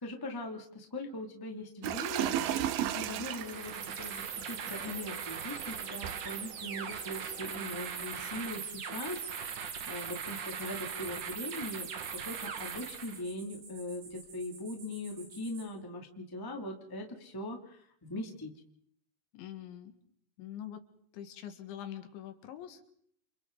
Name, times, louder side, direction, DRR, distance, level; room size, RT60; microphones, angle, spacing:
voice 1, 0.0-11.9 12.2-18.5, left 1 dB, 10° left, 1 dB, 1.4 m, -41 dB
sound 1, 1.8-7.4, right 11 dB, 70° right, 2.4 m, -36 dB
sound 2, 3.3-13.2, right 7 dB, 55° right, 2.6 m, -40 dB
sound 3, 6.6-15.7, right 3 dB, 90° right, 9.0 m, -53 dB
voice 2, 19.3-19.9 20.4-20.8 21.1-22.9, left 10 dB, 80° left, 7 dB, 4.1 m, -44 dB
29.5 x 28.0 x 4.0 m, 0.66 s
omnidirectional pair, 5.4 m